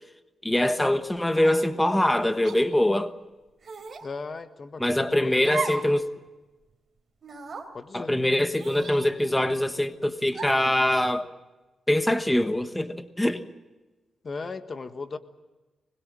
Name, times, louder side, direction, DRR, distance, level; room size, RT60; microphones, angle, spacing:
voice 1, 0.4-3.1 4.8-6.0 7.9-11.3 11.9-13.4, left 1 dB, 10° left, 8 dB, 1.3 m, -23 dB
sound 1, 1.3-1.7 2.4-2.6 3.6-4.1 5.4-5.9 6.3-6.4 7.2-7.7 8.6-9.5 10.3-10.7, right 4 dB, 50° right, 3.7 m, -36 dB
voice 2, 4.0-5.5 7.7-8.1 14.2-15.2, left 4 dB, 40° left, 9 dB, 1.4 m, -36 dB
24.5 x 21.5 x 7.6 m, 1.1 s
cardioid pair, 90°, 0 cm